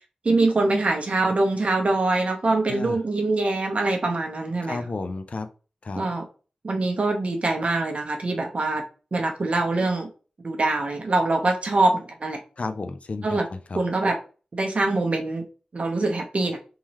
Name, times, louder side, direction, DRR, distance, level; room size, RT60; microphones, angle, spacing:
voice 1, 0.2-4.9 6.0-6.2 6.6-8.8 9.1-10.1 10.4-12.4 13.2-13.5 13.7-14.2 14.5-15.4 15.7-16.6, right 2 dB, 55° right, 1.0 m, -24 dB
voice 2, 4.6-5.5 5.8-6.1 12.6-13.8, left 3 dB, 55° left, 0.5 m, -32 dB
3.7 x 3.0 x 3.0 m
cardioid pair, 55°, 3 cm